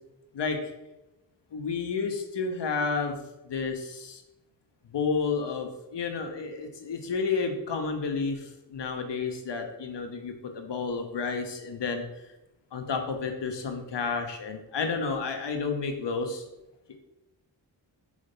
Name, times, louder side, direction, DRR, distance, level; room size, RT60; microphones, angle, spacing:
voice 1, 1.5-3.2 3.5-4.2 4.9-12.0 12.7-16.4, left 4 dB, 65° left, 4 dB, 1.1 m, -31 dB
5.0 x 4.9 x 5.4 m, 0.95 s
cardioid pair, 50°, 45 cm